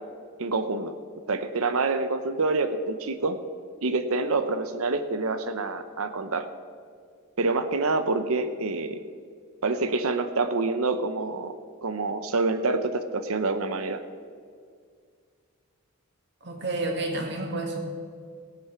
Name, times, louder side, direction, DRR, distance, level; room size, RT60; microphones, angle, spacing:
voice 1, 0.4-0.9 1.3-3.4 3.8-6.5 7.4-9.0 9.6-11.5 11.8-14.0, right 3 dB, 75° right, 9 dB, 0.8 m, -27 dB
voice 2, 16.4-17.8, right 2 dB, 50° right, 2 dB, 2.1 m, -30 dB
17.0 x 8.7 x 6.0 m, 2.1 s
head